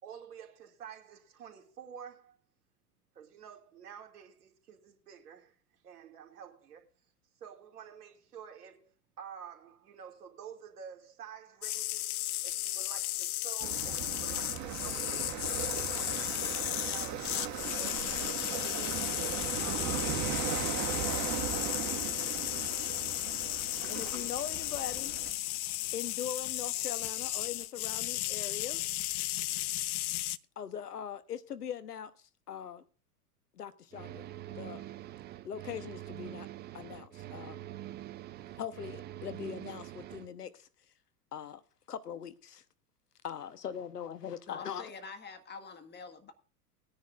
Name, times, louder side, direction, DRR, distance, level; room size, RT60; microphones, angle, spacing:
voice 1, 0.0-2.4 3.1-5.6 5.8-6.9 7.4-8.9 9.2-12.1 12.4-15.4 15.7-21.5, right 8 dB, 75° right, 2.7 m, -50 dB
sound 1, 11.6-30.4, left 16 dB, 70° left, 0.7 m, -34 dB
sound 2, 13.6-25.3, right 9 dB, 40° right, 1.8 m, -38 dB
voice 2, 23.9-25.2 25.9-28.8 30.6-32.1 32.5-32.8 33.5-34.9 35.4-36.5 36.7-37.6 38.6-40.7 41.3-41.6 41.9-42.6 43.2-44.9, left 9 dB, 85° left, 1.1 m, -41 dB
sound 3, 33.9-40.3, right 13 dB, 25° right, 0.5 m, -45 dB
voice 3, 44.5-46.3, left 5 dB, 20° left, 1.8 m, -46 dB
20.0 x 10.0 x 2.5 m
hypercardioid pair, 95°, 46 cm